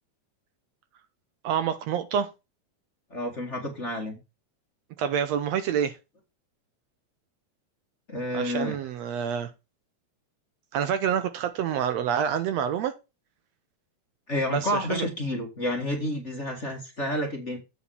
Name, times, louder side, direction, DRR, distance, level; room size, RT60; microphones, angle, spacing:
voice 1, 1.4-2.3 5.0-6.0 8.3-9.5 10.7-12.9 14.4-15.1, right 8 dB, 75° right, 1.9 m, -27 dB
voice 2, 3.1-4.2 8.1-8.8 14.3-17.6, left 1 dB, 25° left, 1.8 m, -30 dB
8.6 x 4.3 x 6.9 m
omnidirectional pair, 3.4 m